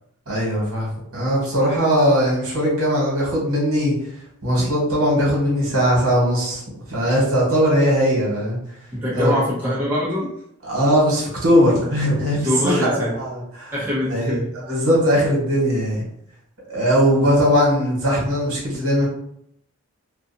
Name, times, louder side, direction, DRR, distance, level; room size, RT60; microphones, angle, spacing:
voice 1, 0.3-3.9 4.4-6.6 6.9-8.6 9.1-9.3 10.6-13.7 14.1-14.4 14.6-16.0 16.7-19.1, equal, 80° right, -4 dB, 1.2 m, -19 dB
voice 2, 8.9-10.3 12.4-13.1 13.7-14.5, left 1 dB, 10° right, -8 dB, 0.7 m, -23 dB
2.5 x 2.3 x 2.6 m, 0.73 s
head